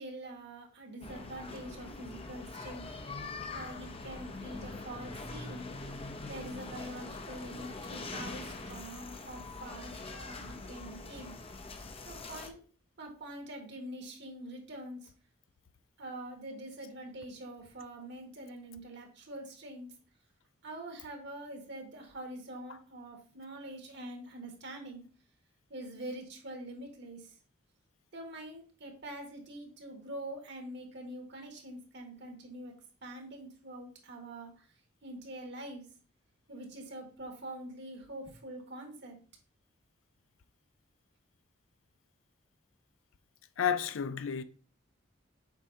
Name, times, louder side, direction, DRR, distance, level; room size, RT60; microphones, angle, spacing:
voice 1, 0.0-2.9 3.5-5.7 6.2-11.4 12.0-12.6 13.0-15.1 16.0-19.9 20.6-25.0 25.7-27.4 28.1-32.7 33.0-34.7 35.0-35.9 36.5-39.2, right 1 dB, 60° right, 1.8 m, -45 dB
sound 1, 1.0-12.5, left 3 dB, 30° left, 0.7 m, -43 dB
voice 2, 43.6-44.4, left 7 dB, 80° left, 0.5 m, -31 dB
7.3 x 4.9 x 2.8 m
head